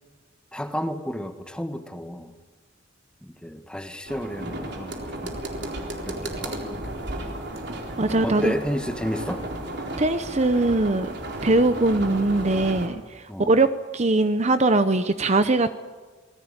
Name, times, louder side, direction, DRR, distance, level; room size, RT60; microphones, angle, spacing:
voice 1, 0.5-2.3 3.2-5.4 6.0-6.8 8.2-9.4 13.3-13.5, equal, 5° left, 7 dB, 1.7 m, -32 dB
sound 1, 4.1-12.9, right 1 dB, 60° right, 4.0 m, -34 dB
voice 2, 7.7-8.5 10.0-11.1 11.4-13.7 13.9-15.8, right 2 dB, 35° right, 10 dB, 0.9 m, -21 dB
26.5 x 20.0 x 8.9 m, 1.4 s
head